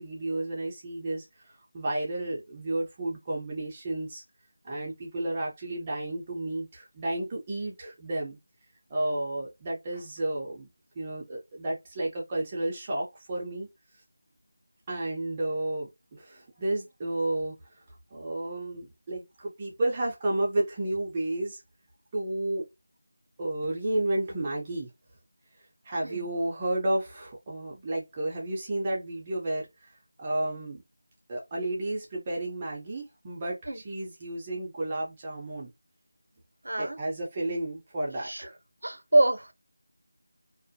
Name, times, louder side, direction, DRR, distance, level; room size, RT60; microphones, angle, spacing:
voice 1, 0.0-4.2 4.6-8.4 8.9-10.7 11.0-13.7 14.9-17.6 18.1-21.6 22.1-22.6 23.4-24.9 25.8-30.8 31.3-35.7 36.8-38.6, right 1 dB, 15° right, 0.3 m, -32 dB
voice 2, 36.6-37.0 38.2-38.5 38.8-39.5, right 2 dB, 85° right, 0.5 m, -25 dB
2.4 x 2.1 x 2.5 m
figure-of-eight pair, 175°, 0 cm